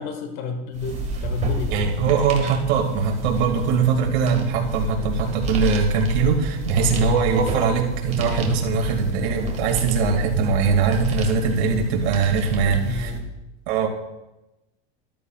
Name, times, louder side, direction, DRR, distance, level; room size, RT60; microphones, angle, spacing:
voice 1, 0.0-1.8 6.7-6.9 12.6-13.2, left 4 dB, 55° left, 6 dB, 1.5 m, -31 dB
sound 1, 0.7-13.2, right 1 dB, 20° right, 1.9 m, -30 dB
voice 2, 1.7-13.1 13.7-13.9, right 5 dB, 70° right, 1 dB, 2.4 m, -21 dB
13.5 x 12.5 x 2.4 m, 0.97 s
supercardioid pair, 150°, 33 cm